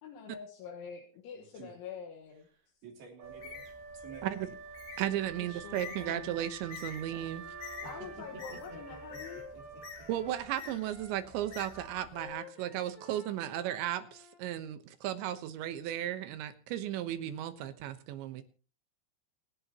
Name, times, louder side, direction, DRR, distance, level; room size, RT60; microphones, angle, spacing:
voice 1, 0.0-2.5 5.4-6.4 7.9-9.4, left 7 dB, 80° left, 3.9 m, -46 dB
voice 2, 1.3-1.7 2.8-3.6 3.9-4.5 7.8-7.9 8.7-8.8 9.1-9.2 9.5-10.1, right 6 dB, 55° right, 4.7 m, -51 dB
Bird, 3.2-12.3, left 6 dB, 60° left, 4.0 m, -49 dB
Wind instrument woodwind instrument, 3.2-10.2, right 5 dB, 40° right, 2.5 m, -48 dB
voice 3, 5.0-7.4 10.1-18.4, right 12 dB, 75° right, 3.3 m, -35 dB
Wind instrument woodwind instrument 2, 7.3-14.4, left 2 dB, 5° right, 3.2 m, -53 dB
28.0 x 11.0 x 3.0 m
omnidirectional pair, 5.4 m